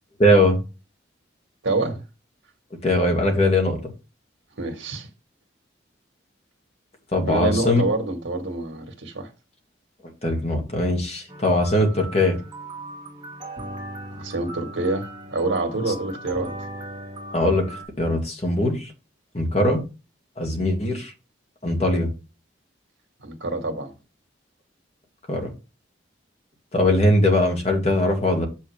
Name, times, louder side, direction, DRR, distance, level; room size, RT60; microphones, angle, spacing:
voice 1, 0.2-0.6 2.8-3.8 7.1-7.8 10.2-12.4 17.3-17.7 18.0-18.9 19.3-19.8 20.4-21.1 21.6-22.1 25.3-25.5 26.7-28.5, left 1 dB, 35° left, 2.0 m, -20 dB
voice 2, 1.6-2.0 4.6-5.1 7.2-9.3 14.1-16.5 23.2-23.9, right 2 dB, 85° right, 1.8 m, -27 dB
sound 1, 11.3-17.8, right 1 dB, 25° right, 2.5 m, -38 dB
7.1 x 6.1 x 3.4 m
head